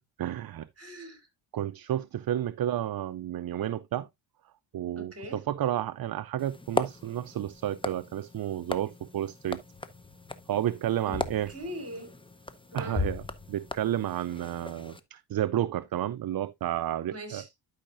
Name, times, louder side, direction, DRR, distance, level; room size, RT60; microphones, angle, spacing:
voice 1, 0.2-0.7 1.5-4.1 4.7-9.6 10.5-11.5 12.7-13.2 13.5-17.4, right 11 dB, 50° right, 0.5 m, -31 dB
voice 2, 0.8-1.3 4.9-5.4 11.1-11.2 11.5-12.1 12.7-13.0 17.1-17.5, equal, 30° right, 3.3 m, -40 dB
sound 1, 6.4-15.0, left 3 dB, 10° left, 0.7 m, -37 dB
12.0 x 5.6 x 2.5 m
cardioid pair, 95°, 46 cm